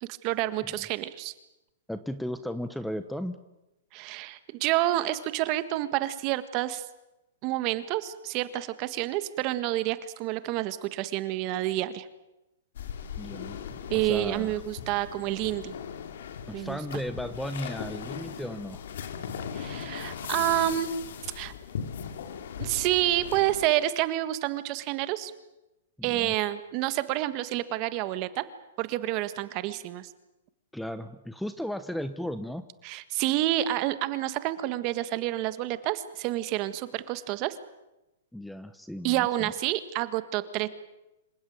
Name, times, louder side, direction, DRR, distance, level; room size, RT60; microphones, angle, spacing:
voice 1, 0.0-1.3 3.9-6.8 7.4-12.1 13.9-15.7 16.5-17.0 19.5-20.9 21.3-21.5 22.6-25.3 26.0-28.4 28.8-30.1 32.8-37.6 39.0-40.7, right 15 dB, 35° right, 13 dB, 1.6 m, -29 dB
voice 2, 1.9-3.4 13.2-14.6 16.5-18.9 26.0-26.3 30.7-32.6 38.3-39.5, equal, ahead, 12 dB, 0.9 m, -35 dB
sound 1, 12.7-23.7, left 7 dB, 70° left, 2.7 m, -38 dB
27.0 x 16.0 x 9.4 m, 0.95 s
hypercardioid pair, 150°, 0 cm